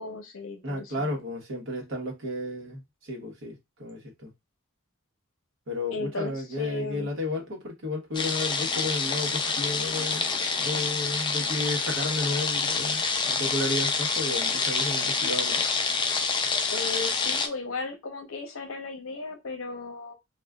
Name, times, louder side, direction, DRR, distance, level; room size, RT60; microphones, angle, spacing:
voice 1, 0.0-1.2 5.9-7.1 16.7-20.1, left 3 dB, 70° left, 0.8 m, -36 dB
voice 2, 0.6-4.3 5.7-10.3 10.6-15.6, left 2 dB, 65° right, 1.2 m, -33 dB
sound 1, 8.1-17.5, left 4 dB, 20° left, 0.4 m, -27 dB
3.5 x 2.4 x 2.3 m
head